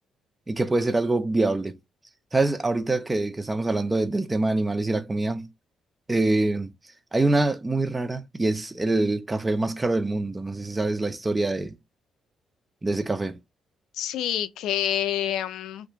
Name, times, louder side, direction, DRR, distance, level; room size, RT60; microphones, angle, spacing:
voice 1, 0.5-1.8 2.3-5.5 6.1-6.7 7.1-11.8 12.8-13.4, right 2 dB, 20° right, 0.5 m, -25 dB
voice 2, 13.9-15.9, left 11 dB, 85° left, 0.3 m, -27 dB
2.7 x 2.5 x 3.5 m
cardioid pair, 90°, 0 cm